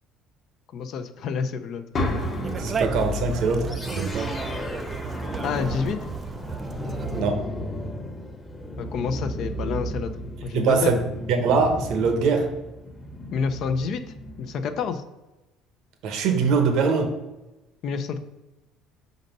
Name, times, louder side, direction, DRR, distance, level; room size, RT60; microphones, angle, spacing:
voice 1, 0.7-1.8 5.4-6.0 8.8-10.1 10.4-10.9 13.3-14.0 14.4-15.0 17.8-18.2, left 6 dB, 60° left, 8 dB, 0.6 m, -28 dB
sound 1, 1.9-5.9, left 3 dB, 40° left, 1.0 m, -33 dB
Conversation, 1.9-7.2, right 5 dB, 30° right, 0.3 m, -33 dB
voice 2, 2.6-4.4 7.2-7.4 10.5-11.0 11.3-12.5 16.0-17.2, right 4 dB, 70° right, 5 dB, 1.0 m, -23 dB
sound 2, 3.7-14.8, left 1 dB, 20° left, 1.0 m, -35 dB
5.2 x 4.0 x 5.3 m, 1.0 s
cardioid pair, 115°, 0 cm